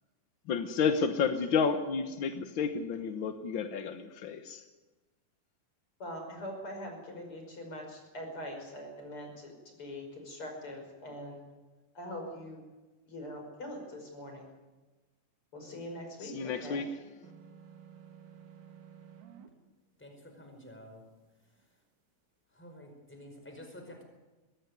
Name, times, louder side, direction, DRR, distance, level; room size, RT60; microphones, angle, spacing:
voice 1, 0.5-4.6 16.2-16.9, left 6 dB, 65° left, 8 dB, 1.2 m, -31 dB
voice 2, 6.0-11.4 11.9-12.6 13.1-14.5 15.5-16.8, left 1 dB, 40° left, 3 dB, 6.1 m, -43 dB
sound 1, 17.2-19.5, right 8 dB, 70° right, 3.3 m, -52 dB
voice 3, 20.0-21.0 22.5-24.0, left 1 dB, 5° left, 4 dB, 4.5 m, -50 dB
22.0 x 16.0 x 9.6 m, 1.2 s
omnidirectional pair, 3.8 m